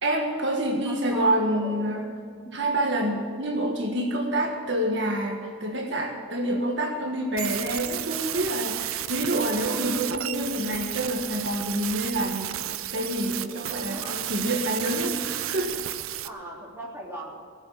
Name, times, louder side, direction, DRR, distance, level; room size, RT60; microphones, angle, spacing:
voice 1, 0.0-2.1 2.5-12.5 12.9-15.8, right 1 dB, 55° right, 2 dB, 1.6 m, -27 dB
voice 2, 0.8-2.7 2.9-3.2 13.9-14.3 16.2-17.3, right 1 dB, 10° right, -4 dB, 3.3 m, -40 dB
sound 1, 7.4-16.3, right 12 dB, 80° right, 0.6 m, -32 dB
18.5 x 7.8 x 9.4 m, 2.3 s
head